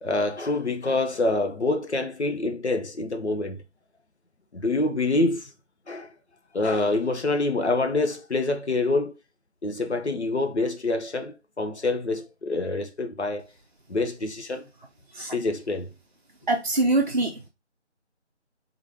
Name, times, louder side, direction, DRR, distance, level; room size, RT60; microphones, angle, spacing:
voice 1, 0.0-3.6 4.5-5.5 5.9-6.1 6.5-9.1 9.6-13.5 13.9-14.6 15.3-15.9, left 2 dB, 65° left, 0.9 m, -26 dB
voice 2, 16.5-17.5, right 2 dB, 40° right, 0.6 m, -24 dB
3.8 x 3.0 x 3.4 m
figure-of-eight pair, 165°, 36 cm